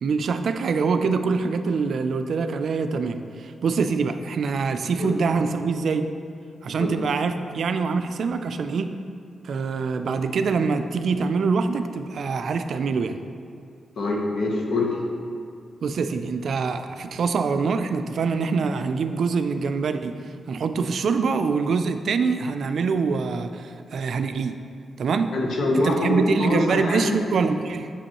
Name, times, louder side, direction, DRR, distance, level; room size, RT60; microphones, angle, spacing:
voice 1, 0.0-6.1 6.6-8.9 9.4-13.2 15.8-20.1 20.5-24.6 25.0-25.4 25.8-27.9, right 5 dB, 65° right, 9 dB, 0.3 m, -24 dB
voice 2, 14.0-14.9 25.3-27.2, left 2 dB, 70° left, 0 dB, 0.9 m, -24 dB
6.8 x 5.2 x 2.9 m, 2.4 s
wide cardioid pair, 115°, 0 cm